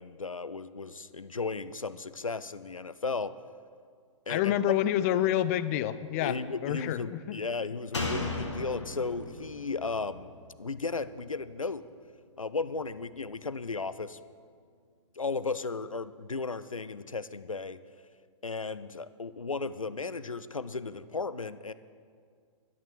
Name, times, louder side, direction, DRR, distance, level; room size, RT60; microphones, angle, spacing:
voice 1, 0.0-3.3 4.3-4.5 6.2-10.3 10.6-11.8 12.4-14.2 15.2-17.8 18.4-21.7, left 4 dB, 85° left, 15 dB, 0.5 m, -35 dB
voice 2, 4.3-7.4, left 12 dB, 30° left, 15 dB, 0.5 m, -28 dB
Slam, 7.9-11.4 11.7-11.8, left 2 dB, 60° left, 2.1 m, -37 dB
13.0 x 9.3 x 6.5 m, 2.1 s
figure-of-eight pair, 115°, 17 cm